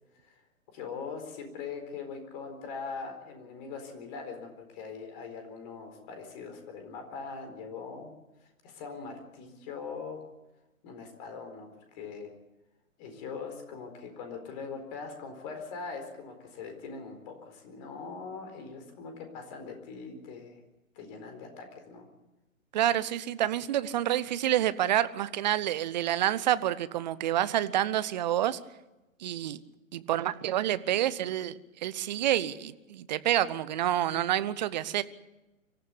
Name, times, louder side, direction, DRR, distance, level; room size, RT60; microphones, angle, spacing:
voice 1, 0.7-8.1 8.4-10.2 10.8-12.3 13.0-20.6 21.0-22.1, left 5 dB, 30° left, 5 dB, 4.3 m, -41 dB
voice 2, 22.7-28.6 29.2-29.6 29.9-35.0, right 12 dB, 30° right, 15 dB, 0.9 m, -28 dB
25.0 x 14.5 x 8.4 m, 1.0 s
figure-of-eight pair, 120°, 41 cm